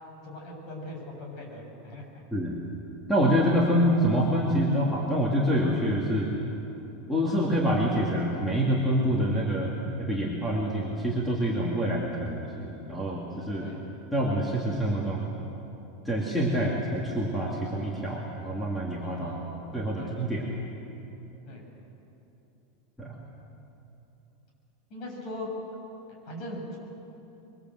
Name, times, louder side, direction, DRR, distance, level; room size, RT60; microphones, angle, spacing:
voice 1, 0.2-2.0 6.7-6.8 13.6-13.8 19.2-19.7 19.9-20.1 20.4-20.6 21.5-21.6 24.9-25.5 26.2-26.8, left 1 dB, 40° left, 0 dB, 7.9 m, -40 dB
voice 2, 3.1-6.3 7.1-9.7 10.0-13.7 14.1-15.2 16.0-19.3 19.7-20.5 23.0-23.2, equal, 5° left, -4 dB, 2.7 m, -26 dB
26.0 x 23.5 x 8.0 m, 3.0 s
supercardioid pair, 165°, 0 cm